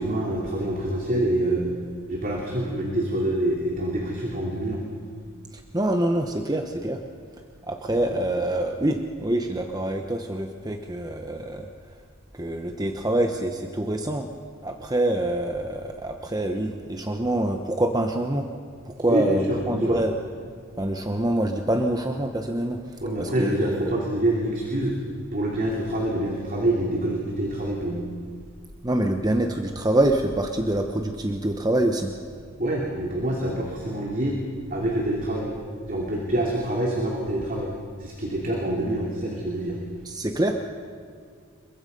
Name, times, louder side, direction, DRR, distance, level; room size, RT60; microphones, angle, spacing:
voice 1, 0.0-1.7 2.1-4.8 7.9-8.2 19.1-20.0 23.0-25.0 25.3-28.1 32.6-34.4 34.7-35.5 35.9-37.7 38.0-39.8, right 1 dB, 40° right, -1 dB, 3.0 m, -26 dB
voice 2, 5.5-7.0 7.7-11.7 12.4-14.3 14.6-18.5 18.8-20.1 20.8-22.8 23.2-24.0 28.8-32.1 40.0-40.5, right 1 dB, 20° right, 4 dB, 1.1 m, -25 dB
28.0 x 22.5 x 5.5 m, 2.1 s
head